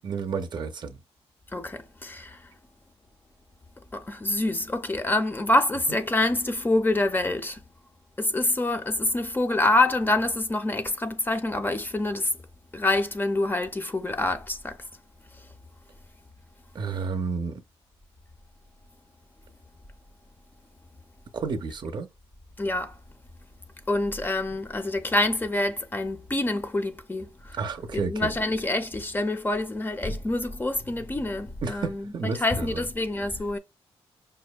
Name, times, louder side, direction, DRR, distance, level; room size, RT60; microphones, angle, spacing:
voice 1, 0.0-1.0 16.7-17.6 21.3-22.1 27.5-28.4 31.6-32.8, right 5 dB, 45° right, 0.5 m, -31 dB
voice 2, 1.5-2.3 4.1-7.6 8.2-12.3 12.7-14.7 22.6-22.9 23.9-27.3 27.9-33.6, left 2 dB, 20° left, 0.4 m, -26 dB
5.1 x 2.1 x 2.2 m
cardioid pair, 95°, 11 cm